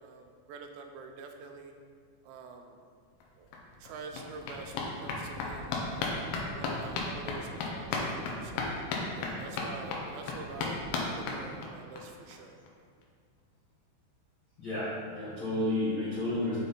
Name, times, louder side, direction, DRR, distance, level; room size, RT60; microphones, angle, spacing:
voice 1, 0.0-1.7 2.2-2.8 3.4-3.5 3.8-8.7 9.2-12.6, right 4 dB, 85° right, 4 dB, 2.7 m, -46 dB
sound 1, 3.2-3.3 3.5-12.0 12.3-12.4 12.7-12.8 13.0-13.1, left 3 dB, 75° left, 2.4 m, -35 dB
voice 2, 14.6-16.6, left 1 dB, 50° left, -14 dB, 1.5 m, -31 dB
6.8 x 4.9 x 4.3 m, 2.1 s
omnidirectional pair, 5.2 m